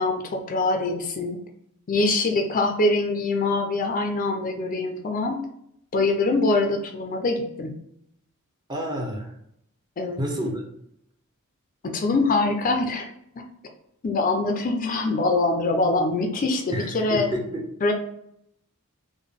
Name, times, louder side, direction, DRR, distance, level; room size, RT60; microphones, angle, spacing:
voice 1, 0.0-1.4 1.9-5.4 5.9-7.7 10.0-10.3 11.8-13.1 14.0-17.3 17.8-17.9, left 2 dB, 40° left, 4 dB, 0.4 m, -24 dB
voice 2, 8.7-9.3 10.2-10.6 16.7-17.6, equal, 20° right, 0 dB, 0.6 m, -29 dB
3.6 x 2.1 x 3.5 m, 0.74 s
head